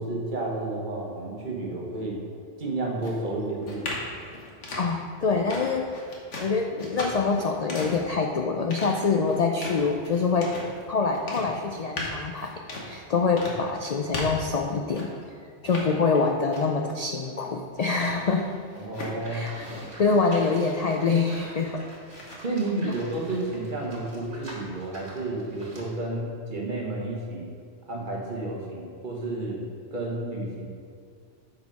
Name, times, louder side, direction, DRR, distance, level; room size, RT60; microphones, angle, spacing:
voice 1, 0.0-2.2 2.6-3.9 18.7-19.5 22.4-27.5 27.9-30.7, right 2 dB, 45° right, -2 dB, 1.4 m, -31 dB
sound 1, 3.0-15.3 15.6-16.9 17.2-19.9 20.2-21.7 22.1-22.3, left 2 dB, 80° left, 1.6 m, -38 dB
voice 2, 4.8-6.0 6.4-10.5 10.9-12.5 12.8-15.1 15.6-18.4 19.3-19.7 20.0-21.8, left 4 dB, 55° left, 3 dB, 0.4 m, -25 dB
Livestock farm animals working animals, 19.2-26.0, right 1 dB, 65° right, 2.0 m, -46 dB
8.2 x 5.1 x 5.2 m, 2.2 s
omnidirectional pair, 1.2 m